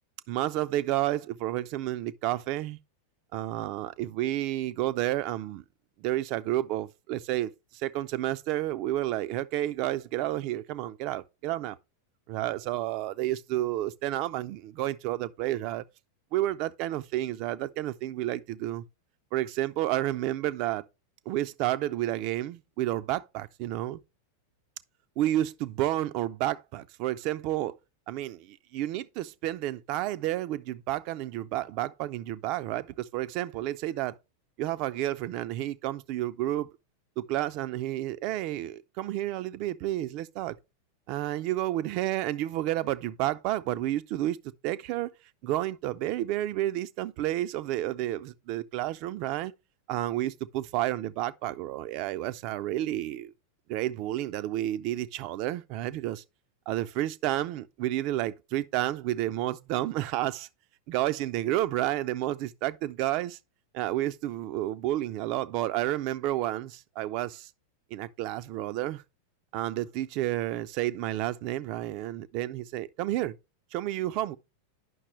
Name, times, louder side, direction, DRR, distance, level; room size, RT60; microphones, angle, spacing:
voice 1, 0.3-2.8 3.3-5.6 6.0-11.8 12.3-15.8 16.3-18.8 19.3-20.8 21.3-24.0 25.2-27.8 28.1-34.2 34.6-36.7 37.2-40.6 41.1-45.1 45.4-49.5 49.9-53.3 53.7-56.2 56.7-60.5 60.9-63.4 63.7-67.5 67.9-69.0 69.5-73.3 73.7-74.4, right 14 dB, 45° right, 0.3 m, -30 dB
9.2 x 5.7 x 3.1 m
figure-of-eight pair, 90°, 0 cm